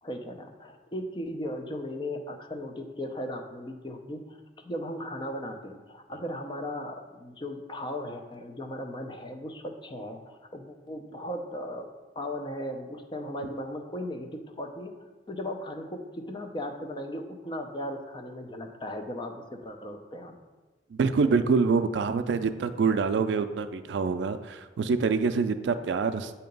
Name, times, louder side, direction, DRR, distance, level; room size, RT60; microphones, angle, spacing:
voice 1, 0.0-4.4 4.6-11.9 12.2-15.0 15.3-20.3, left 1 dB, 25° left, 4 dB, 0.5 m, -37 dB
voice 2, 20.9-26.3, right 5 dB, 70° right, 10 dB, 0.3 m, -26 dB
7.6 x 2.8 x 5.2 m, 1.2 s
head